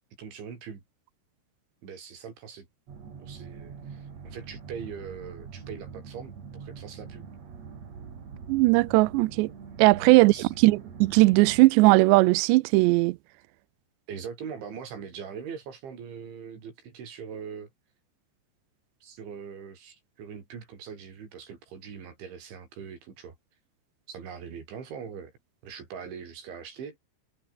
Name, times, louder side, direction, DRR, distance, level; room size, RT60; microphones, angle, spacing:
voice 1, 0.2-0.8 1.8-2.7 3.2-7.3 9.9-10.5 14.1-17.7 19.0-23.4 24.1-25.3 25.6-27.0, right 7 dB, 65° right, 7.2 m, -41 dB
sound 1, 2.9-11.7, right 6 dB, 40° right, 3.7 m, -44 dB
voice 2, 8.5-9.5 9.8-13.2, right 22 dB, 85° right, 2.5 m, -19 dB
omnidirectional pair, 5.7 m